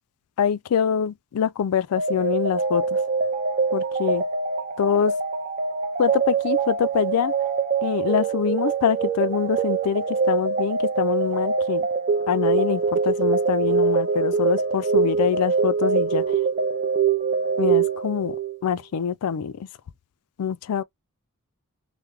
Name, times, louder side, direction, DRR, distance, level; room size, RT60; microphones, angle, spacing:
voice 1, 0.4-2.8 3.7-4.2 4.8-5.1 6.0-7.3 7.8-11.9 12.3-16.2 17.6-18.4 18.6-19.7 20.4-20.8, left 8 dB, 80° left, 0.4 m, -24 dB
sound 1, 2.0-18.6, right 5 dB, 35° right, 0.5 m, -24 dB
3.2 x 2.1 x 3.4 m
head